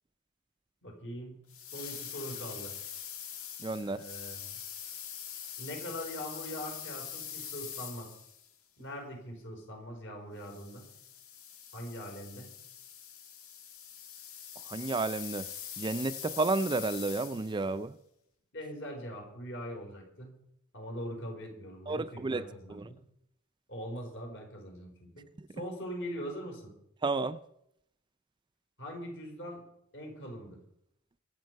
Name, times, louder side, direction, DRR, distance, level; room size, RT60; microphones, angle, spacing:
voice 1, 0.8-1.4 1.7-2.7 3.8-4.6 5.6-8.2 8.8-10.9 11.7-12.5 18.5-20.3 20.7-23.0 23.7-25.3 25.6-26.7 28.8-29.6 29.9-30.6, equal, 60° left, 4.4 m, -42 dB
sound 1, 1.5-8.5 10.4-17.7, left 8 dB, 90° left, 1.9 m, -44 dB
voice 2, 3.6-4.0 14.7-15.5 15.8-17.9 21.9-22.8 25.4-25.5 27.0-27.4, right 3 dB, 20° right, 0.4 m, -32 dB
24.0 x 8.1 x 4.7 m
head